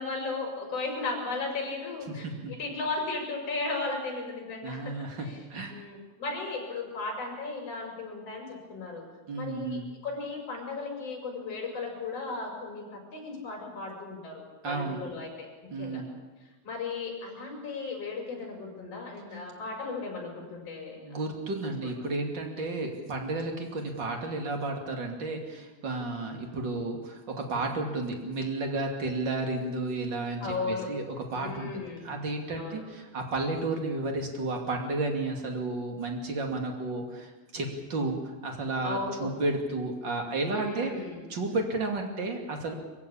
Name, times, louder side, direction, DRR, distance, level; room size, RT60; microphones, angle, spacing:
voice 1, 0.0-5.4 5.7-9.1 9.3-9.8 10.0-15.5 15.8-16.0 16.6-21.2 21.8-22.0 30.4-30.9 31.3-32.1 32.5-32.8 38.8-39.3 40.5-41.2, left 3 dB, 30° left, 1 dB, 6.4 m, -36 dB
voice 2, 2.1-2.5 4.6-5.8 9.3-9.9 14.6-15.0 15.7-16.1 20.9-40.9 41.3-42.7, right 2 dB, 30° right, 3 dB, 2.2 m, -32 dB
24.5 x 15.5 x 8.7 m, 1.2 s
omnidirectional pair, 5.6 m